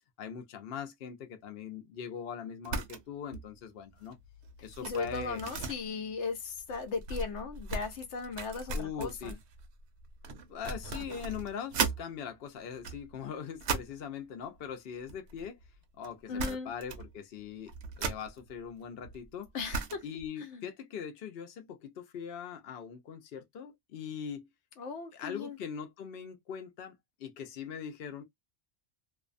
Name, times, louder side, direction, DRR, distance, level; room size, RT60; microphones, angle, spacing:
voice 1, 0.2-4.2 4.6-5.4 8.7-9.4 10.5-15.6 16.0-19.5 20.0-24.5 25.1-28.2, left 7 dB, 65° left, 0.8 m, -41 dB
sound 1, 2.6-3.0 3.3-3.6 3.9-12.0 12.6-14.1 15.0-15.8 16.0-16.1 16.4-17.1 17.4-20.3, right 4 dB, 75° right, 0.9 m, -38 dB
voice 2, 4.8-9.3 16.3-16.7 19.5-20.0 20.4-20.6 24.8-25.6, left 4 dB, 85° left, 1.0 m, -37 dB
2.6 x 2.1 x 2.4 m
omnidirectional pair, 1.2 m